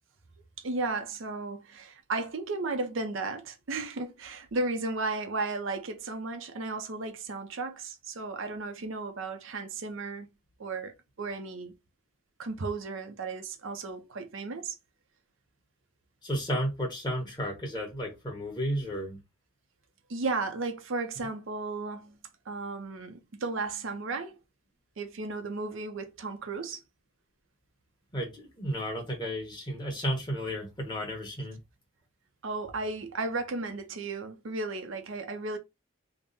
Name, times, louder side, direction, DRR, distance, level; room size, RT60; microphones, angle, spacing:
voice 1, 0.6-10.3 10.6-11.7 12.4-14.8 20.1-22.2 22.5-24.4 25.0-26.8 32.4-35.6, right 3 dB, 60° right, 0.6 m, -34 dB
voice 2, 16.2-19.2 28.1-31.6, equal, 20° left, 1.2 m, -33 dB
3.6 x 2.1 x 3.9 m
head